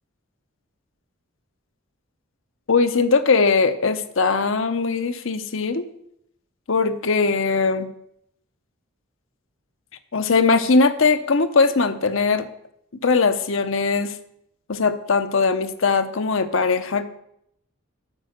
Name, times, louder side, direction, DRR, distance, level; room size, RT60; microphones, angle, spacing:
voice 1, 2.7-5.8 6.7-7.9 10.1-12.5 13.0-14.1 14.7-17.0, left 4 dB, 70° left, 10 dB, 0.8 m, -20 dB
8.7 x 6.6 x 6.5 m, 0.75 s
head